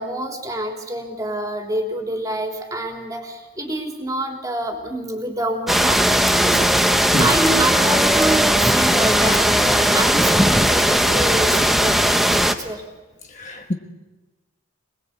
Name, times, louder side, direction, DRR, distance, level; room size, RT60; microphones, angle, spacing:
voice 1, 0.0-6.6 7.2-12.8, right 1 dB, 15° right, 3.5 m, -27 dB
sound 1, 5.7-12.5, equal, ahead, 1.0 m, -17 dB
voice 2, 13.3-13.7, left 1 dB, 35° left, 1.4 m, -25 dB
26.5 x 20.5 x 8.3 m
head